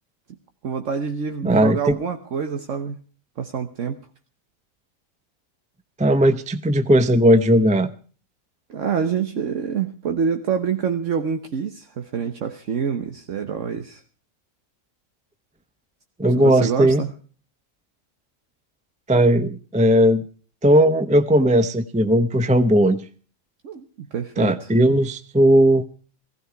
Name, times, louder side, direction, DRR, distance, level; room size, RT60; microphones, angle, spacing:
voice 1, 0.6-3.0 3.4-4.0 8.7-14.0 16.3-17.1 23.6-24.7, right 6 dB, 65° right, 7 dB, 1.4 m, -26 dB
voice 2, 1.4-2.0 6.0-7.9 16.2-17.0 19.1-20.2 20.6-23.1 24.4-25.8, equal, 5° right, 11 dB, 0.6 m, -17 dB
16.5 x 16.0 x 4.6 m, 0.41 s
omnidirectional pair, 1.4 m